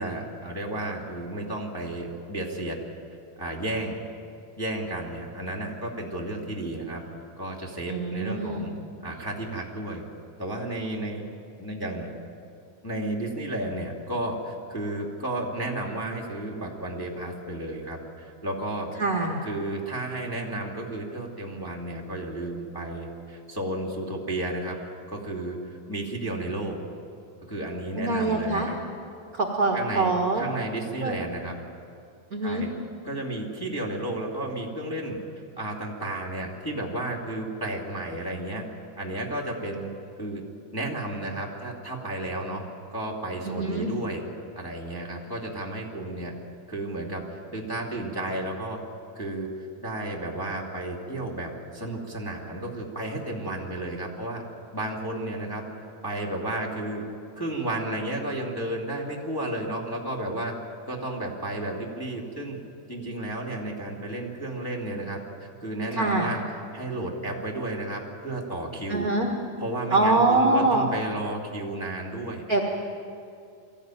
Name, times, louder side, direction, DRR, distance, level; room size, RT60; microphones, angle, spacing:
voice 1, 0.0-2.8 3.4-4.0 4.6-7.0 7.4-8.7 9.0-10.1 10.4-11.2 11.6-12.1 12.8-18.9 19.4-24.8 25.1-26.8 27.5-28.8 29.7-31.5 32.4-32.7 33.0-35.2 35.6-38.7 39.0-39.9 40.2-40.4 40.7-42.6 42.9-44.2 44.6-46.3 46.7-48.8 49.1-54.4 54.7-55.7 56.0-57.1 57.4-60.5 60.9-62.6 62.9-66.4 66.7-69.1 69.6-72.4, right 1 dB, 10° left, 0 dB, 1.9 m, -32 dB
voice 2, 7.9-8.7 19.0-19.4 28.0-28.7 29.3-30.4 31.0-31.2 32.3-32.7 43.4-43.9 65.9-66.3 68.9-69.3 69.9-70.9 72.5-72.6, right 2 dB, 40° right, 1 dB, 1.5 m, -24 dB
23.5 x 14.5 x 9.1 m, 2.4 s
omnidirectional pair, 3.8 m